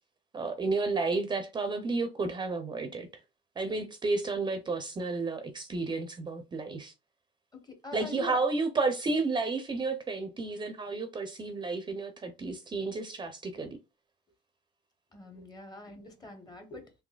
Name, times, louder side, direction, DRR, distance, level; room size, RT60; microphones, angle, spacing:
voice 1, 0.3-3.1 3.6-6.9 7.9-13.8, right 3 dB, 25° right, 0.5 m, -31 dB
voice 2, 7.6-8.4 15.1-17.0, left 2 dB, 25° left, 1.1 m, -43 dB
3.9 x 2.7 x 2.3 m
cardioid pair, 110°, 17 cm